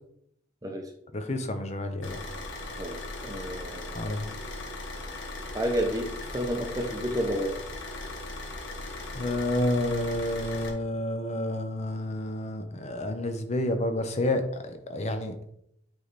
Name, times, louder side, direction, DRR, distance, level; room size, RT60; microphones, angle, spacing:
voice 1, 1.1-2.2 3.9-4.3 9.1-15.3, left 1 dB, 35° left, 7 dB, 0.7 m, -29 dB
Car / Idling, 2.0-10.7, left 2 dB, 75° left, 1.2 m, -38 dB
voice 2, 3.2-4.0 5.5-7.6, equal, 20° right, 3 dB, 0.7 m, -30 dB
8.1 x 3.3 x 4.1 m, 0.75 s
head